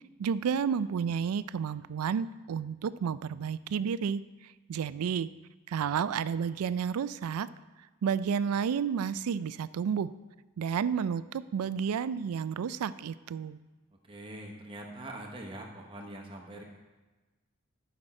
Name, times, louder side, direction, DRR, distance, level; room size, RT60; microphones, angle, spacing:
voice 1, 0.2-4.2 4.7-5.3 5.7-7.5 8.0-10.1 10.6-13.6, right 7 dB, 90° right, 16 dB, 0.3 m, -31 dB
voice 2, 14.1-16.6, right 1 dB, 25° right, 1 dB, 0.9 m, -43 dB
11.5 x 6.0 x 4.3 m, 1.2 s
head